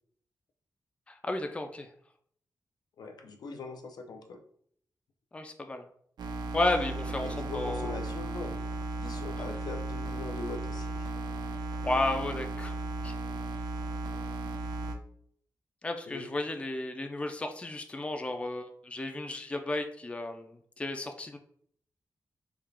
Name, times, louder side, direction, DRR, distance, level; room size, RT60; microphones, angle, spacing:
voice 1, 1.1-1.9 5.3-5.9 6.5-8.0 11.8-12.7 13.0-13.1 15.8-21.4, left 2 dB, 15° left, 6 dB, 0.3 m, -33 dB
voice 2, 3.0-4.4 7.2-8.6 9.0-11.1 16.1-16.3, left 3 dB, 75° left, 4 dB, 0.5 m, -41 dB
sound 1, 6.2-14.9, right 2 dB, 85° right, 0.5 m, -35 dB
3.5 x 2.3 x 3.3 m, 0.62 s
wide cardioid pair, 110°, 7 cm